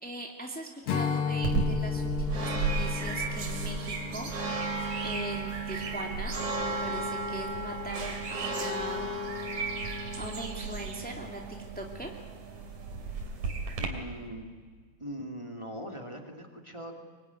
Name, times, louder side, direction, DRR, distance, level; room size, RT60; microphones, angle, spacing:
voice 1, 0.0-4.3 5.0-6.3 6.6-9.2 10.2-12.2, right 1 dB, 5° left, 1 dB, 0.6 m, -40 dB
Strum, 0.9-6.3, left 6 dB, 60° left, 3.0 m, -34 dB
sound 1, 1.4-13.9, right 3 dB, 50° right, 3.8 m, -33 dB
voice 2, 13.8-14.5 15.0-16.9, equal, 10° right, 3 dB, 1.7 m, -41 dB
24.5 x 23.5 x 9.7 m, 1.5 s
omnidirectional pair, 4.7 m